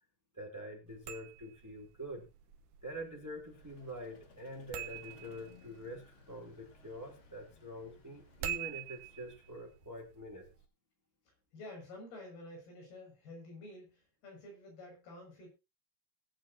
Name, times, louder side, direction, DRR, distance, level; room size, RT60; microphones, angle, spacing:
voice 1, 0.3-2.2 2.8-10.5, equal, 5° right, 1 dB, 1.9 m, -46 dB
sound 1, 0.9-10.7, right 10 dB, 80° right, 3.1 m, -48 dB
Vehicle, 3.4-9.8, left 4 dB, 40° left, 2.3 m, -62 dB
voice 2, 11.5-15.5, left 1 dB, 70° left, 1 dB, 8.4 m, -50 dB
20.5 x 8.9 x 2.8 m, 0.27 s
omnidirectional pair, 4.6 m